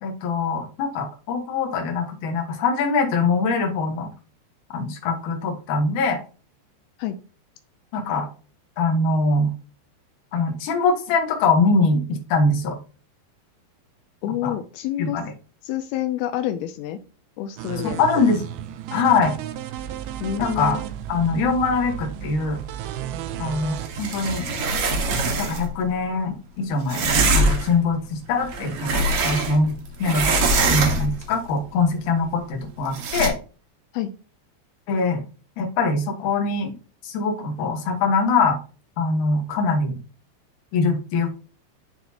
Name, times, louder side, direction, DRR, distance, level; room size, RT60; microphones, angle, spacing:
voice 1, 0.0-4.1 4.7-6.2 7.9-8.3 8.8-9.5 10.3-12.8 14.4-14.5 15.0-15.2 18.0-18.4 18.9-19.3 20.4-20.8 21.1-22.6 23.4-24.5 25.4-33.4 34.9-35.2 35.6-36.7 37.0-38.6 39.0-40.0 40.7-41.4, left 3 dB, 60° left, 2 dB, 2.4 m, -23 dB
voice 2, 14.2-15.2 15.6-17.0 17.4-18.1 20.2-20.8 33.9-34.1, left 12 dB, 85° left, 8 dB, 2.2 m, -28 dB
sound 1, 17.6-23.9, right 10 dB, 80° right, 2.2 m, -33 dB
sound 2, 23.8-25.7 26.9-27.7 28.4-29.7 30.0-31.2 32.9-33.3, right 2 dB, 65° right, 2.0 m, -23 dB
12.0 x 4.1 x 2.8 m, 0.38 s
omnidirectional pair, 5.1 m